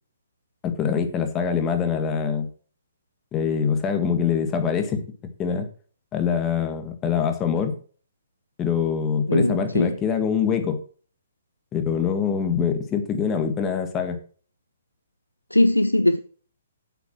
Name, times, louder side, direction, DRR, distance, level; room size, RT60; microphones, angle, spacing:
voice 1, 0.6-2.5 3.3-5.0 5.4-5.7 6.1-7.7 8.6-10.8 11.7-14.2, left 7 dB, 20° left, 1.5 m, -24 dB
voice 2, 9.3-9.9 15.5-16.2, left 1 dB, 90° left, 0.4 m, -19 dB
8.0 x 6.1 x 5.9 m
figure-of-eight pair, 120°, 0 cm